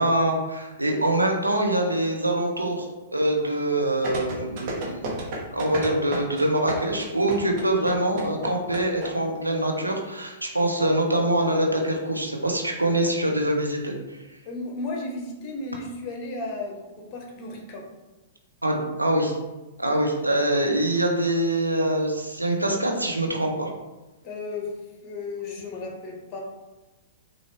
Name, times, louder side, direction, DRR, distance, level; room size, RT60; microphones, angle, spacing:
voice 1, 0.0-5.0 5.5-14.2 18.6-19.3 19.8-23.7, right 1 dB, 90° right, 1 dB, 0.8 m, -24 dB
sound 1, 4.0-9.1 9.3-9.4, right 2 dB, 45° right, 1.3 m, -31 dB
voice 2, 14.4-17.8 24.2-24.7 25.0-26.4, left 3 dB, 35° left, 0 dB, 1.2 m, -34 dB
5.6 x 2.7 x 3.3 m, 1.1 s
figure-of-eight pair, 105°, 0 cm